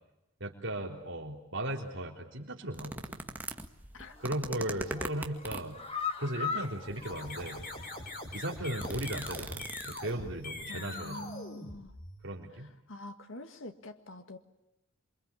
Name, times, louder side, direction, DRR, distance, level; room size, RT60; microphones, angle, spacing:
voice 1, 0.4-3.2 4.2-5.8 6.2-7.6 8.3-11.4 12.2-12.7, right 1 dB, 65° right, 1 dB, 3.7 m, -37 dB
sound 1, 2.7-5.8 6.6-7.1 7.7-7.8 8.1-10.3 10.6-10.7, right 1 dB, 10° right, 1.9 m, -40 dB
sound 2, 4.1-4.4 4.8-8.2 8.5-8.6 9.0-9.1, left 6 dB, 30° left, 2.3 m, -39 dB
sound 3, 6.9-12.4, left 2 dB, 45° left, 6.4 m, -43 dB
voice 2, 10.7-11.9 12.9-14.4, left 1 dB, 70° left, 7 dB, 1.9 m, -45 dB
28.5 x 24.0 x 8.5 m, 0.90 s
head